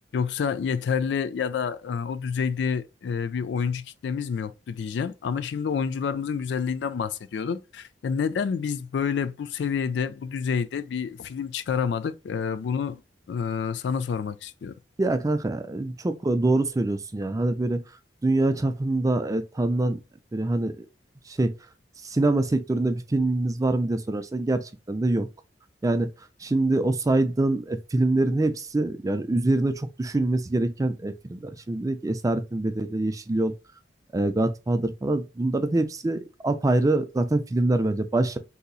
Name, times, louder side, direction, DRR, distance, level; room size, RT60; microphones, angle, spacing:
voice 1, 0.1-13.0 13.3-14.7, left 6 dB, 70° left, 0.3 m, -28 dB
voice 2, 15.0-17.8 18.2-20.0 20.3-20.9 21.3-21.5 22.1-25.3 25.8-26.1 26.4-33.5 34.1-38.4, right 2 dB, 20° right, 0.4 m, -25 dB
3.9 x 2.8 x 2.4 m
head